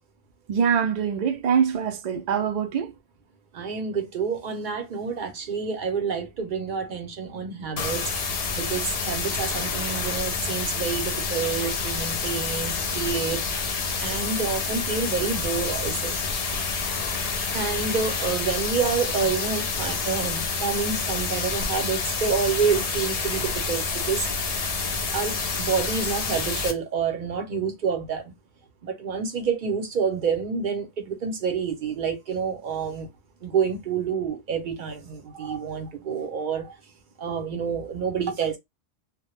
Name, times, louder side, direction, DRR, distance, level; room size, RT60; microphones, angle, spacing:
voice 1, 0.5-2.9, right 7 dB, 85° right, 0.3 m, -24 dB
voice 2, 3.5-16.2 17.5-24.3 25.1-28.3 28.8-33.1 33.4-36.7 37.2-38.6, right 6 dB, 50° right, 0.7 m, -28 dB
sound 1, 7.8-26.7, left 4 dB, 75° left, 0.3 m, -28 dB
2.2 x 2.1 x 3.0 m
omnidirectional pair, 1.3 m